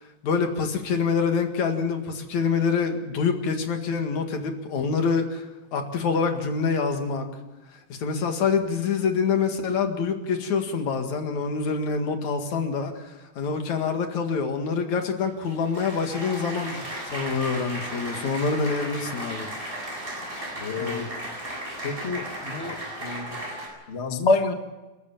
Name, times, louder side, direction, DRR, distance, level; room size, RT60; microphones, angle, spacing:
voice 1, 0.2-5.5 5.7-7.3 7.9-16.8 17.1-19.5 20.8-21.1, left 5 dB, 70° left, 5 dB, 3.3 m, -26 dB
Applause, 15.2-23.7, right 1 dB, 15° right, 7.1 m, -35 dB
voice 2, 20.6-21.0 21.8-22.2 22.5-22.7 23.0-23.2 23.9-24.5, left 3 dB, 30° left, 6 dB, 1.2 m, -26 dB
30.0 x 13.5 x 7.3 m, 1.1 s
omnidirectional pair, 3.5 m